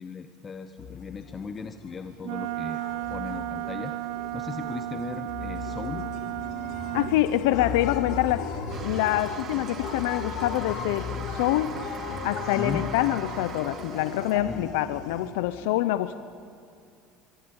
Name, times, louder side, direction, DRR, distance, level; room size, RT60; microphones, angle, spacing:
voice 1, 0.0-2.8 3.1-3.9 4.3-6.1 12.6-12.8 14.4-14.7, left 5 dB, 20° left, 9 dB, 0.9 m, -37 dB
sound 1, 0.8-15.3, left 5 dB, 55° left, 3.3 m, -37 dB
Wind instrument woodwind instrument, 2.2-7.2, right 15 dB, 70° right, 0.6 m, -33 dB
voice 2, 6.9-8.6 8.8-11.8 12.2-16.2, left 14 dB, 85° left, 13 dB, 0.8 m, -26 dB
Toilet flush, 8.7-14.4, right 7 dB, 35° right, 2.0 m, -41 dB
23.0 x 23.0 x 8.9 m, 2.4 s
cardioid pair, 140°, 0 cm